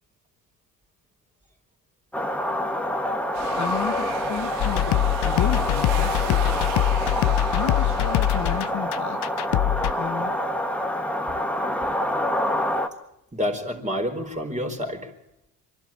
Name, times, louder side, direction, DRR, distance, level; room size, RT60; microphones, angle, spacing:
sound 1, 2.1-12.9, left 1 dB, 5° left, 1.7 m, -27 dB
sound 2, 3.3-8.7, right 8 dB, 85° right, 2.0 m, -37 dB
voice 1, 3.6-6.4 7.5-9.2 10.0-10.3 11.8-12.0, left 8 dB, 35° left, 7 dB, 1.1 m, -33 dB
sound 3, 4.6-9.9, left 14 dB, 55° left, 0.9 m, -23 dB
voice 2, 13.3-15.1, left 1 dB, 15° right, 3 dB, 4.4 m, -29 dB
25.5 x 12.0 x 8.8 m, 0.84 s
hypercardioid pair, 65°, 49 cm